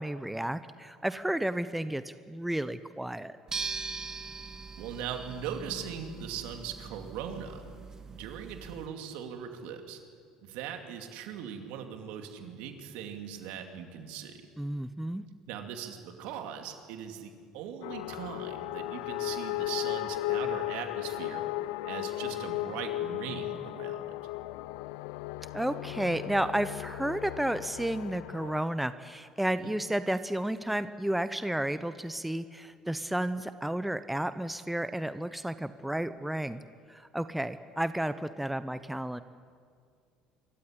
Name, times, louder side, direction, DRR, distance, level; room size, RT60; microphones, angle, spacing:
voice 1, 0.0-3.4 14.6-15.2 25.5-36.6 36.9-39.2, right 1 dB, 5° right, 13 dB, 0.9 m, -32 dB
sound 1, 3.5-8.9, right 4 dB, 30° right, 2.0 m, -41 dB
voice 2, 4.8-7.6 8.1-10.0 10.4-14.4 15.5-21.4 21.8-24.2, right 8 dB, 70° right, 5 dB, 2.6 m, -40 dB
sound 2, 17.8-28.6, left 16 dB, 75° left, 0.5 m, -36 dB
25.5 x 14.5 x 9.9 m, 2.2 s
hypercardioid pair, 70°, 2 cm